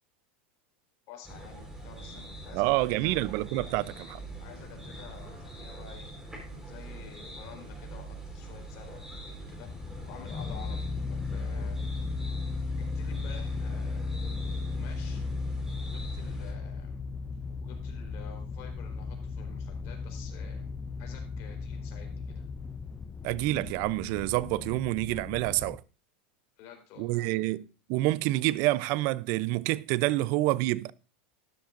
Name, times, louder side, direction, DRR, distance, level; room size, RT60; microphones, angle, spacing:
voice 1, 1.1-3.2 4.4-6.1 6.6-9.7 10.1-12.1 12.7-14.1 14.7-15.3 15.8-16.9 17.6-20.7 21.0-22.4 26.6-27.5, left 7 dB, 55° left, 4.0 m, -50 dB
sound 1, 1.2-16.5, right 2 dB, 5° right, 4.3 m, -43 dB
voice 2, 2.5-4.2 23.2-25.8 27.0-27.6 27.9-30.9, right 18 dB, 55° right, 0.5 m, -27 dB
sound 2, 9.6-25.8, left 4 dB, 20° left, 0.4 m, -36 dB
12.5 x 10.5 x 2.6 m
supercardioid pair, 130°, 6 cm